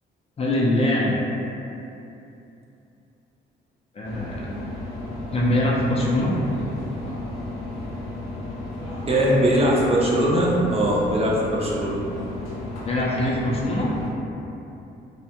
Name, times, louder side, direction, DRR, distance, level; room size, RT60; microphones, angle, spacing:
voice 1, 0.4-1.2 4.0-4.5 5.3-6.3 12.9-13.9, left 1 dB, 30° left, -4 dB, 0.4 m, -22 dB
sound 1, 4.0-14.1, left 1 dB, 85° left, 0.7 m, -33 dB
voice 2, 9.0-12.0, right 1 dB, 30° right, -4 dB, 0.5 m, -20 dB
2.5 x 2.1 x 2.8 m, 2.8 s
cardioid pair, 90°, 20 cm